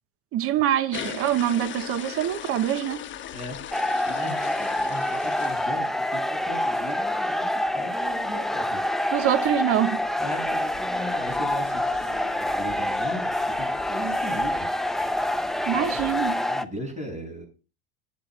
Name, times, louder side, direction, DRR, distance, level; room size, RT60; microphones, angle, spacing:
voice 1, 0.3-3.0 9.1-10.0 15.7-16.4, right 11 dB, 45° right, 0.9 m, -24 dB
sound 1, 0.9-6.4 6.8-7.0 7.4-7.5 7.7-7.8 8.0-16.3, left 10 dB, 35° left, 1.2 m, -41 dB
voice 2, 3.3-8.8 10.2-14.7 15.7-17.4, equal, 20° right, 7.5 m, -38 dB
sound 2, 3.7-16.6, left 1 dB, ahead, 0.6 m, -27 dB
18.5 x 8.8 x 2.4 m
hypercardioid pair, 90°, 32 cm